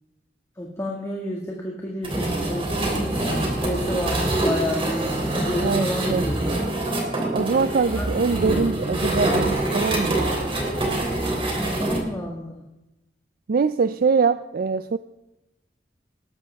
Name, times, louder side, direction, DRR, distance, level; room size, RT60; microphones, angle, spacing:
voice 1, 0.6-5.0 5.5-6.2 8.0-8.1 11.8-12.6, left 1 dB, 15° left, -2 dB, 1.9 m, -30 dB
sound 1, 2.0-12.0, right 1 dB, 30° right, 3.3 m, -25 dB
voice 2, 5.6-6.2 7.3-10.3 13.5-15.0, right 5 dB, 55° right, 13 dB, 0.4 m, -23 dB
19.0 x 13.5 x 3.5 m, 0.94 s
head